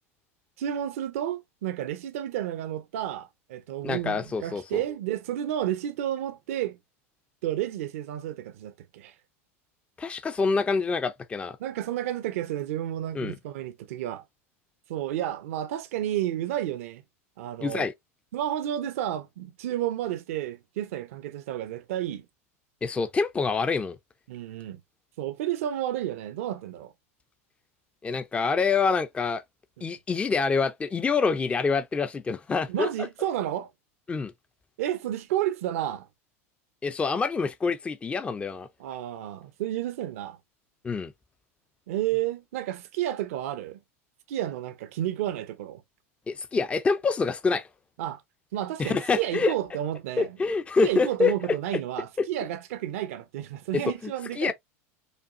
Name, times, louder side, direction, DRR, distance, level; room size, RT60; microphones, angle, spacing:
voice 1, 0.6-6.8 7.4-9.1 11.6-14.2 14.9-17.0 17.4-17.9 18.3-22.3 24.3-24.8 25.2-26.9 28.1-28.2 29.8-30.0 32.7-33.7 34.8-36.1 38.8-40.4 41.9-43.8 44.3-45.8 48.0-48.2 48.5-50.4 50.8-54.5, right 12 dB, 70° right, 0.7 m, -31 dB
voice 2, 3.8-4.8 10.0-11.6 13.1-13.4 17.6-17.9 22.8-24.0 28.0-29.4 29.8-32.9 34.1-34.3 36.8-38.7 40.8-41.1 46.3-47.7 48.8-49.5 50.2-51.3 53.7-54.1 54.4-54.5, left 4 dB, 15° left, 0.5 m, -26 dB
5.1 x 2.3 x 2.6 m
hypercardioid pair, 110°, 8 cm